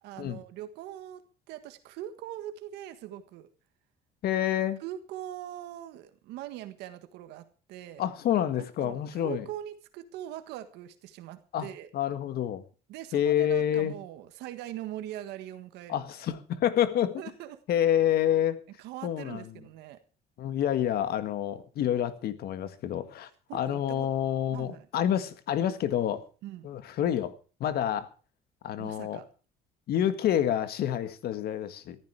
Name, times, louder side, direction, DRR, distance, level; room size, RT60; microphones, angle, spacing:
voice 1, 0.0-1.2 1.5-3.5 4.8-8.0 8.8-11.9 12.9-16.0 17.2-17.6 18.8-20.0 23.5-24.1 24.5-24.9 26.4-26.7 28.8-29.3, right 12 dB, 90° right, 1.6 m, -41 dB
voice 2, 4.2-4.8 8.0-9.5 11.5-11.7 11.9-12.6 13.1-13.9 15.9-17.2 17.7-18.6 19.0-19.4 20.4-26.2 26.6-27.3 27.6-28.1 28.6-29.2 29.9-32.0, left 10 dB, 70° left, 1.8 m, -28 dB
14.5 x 13.5 x 4.8 m
cardioid pair, 110°, 17 cm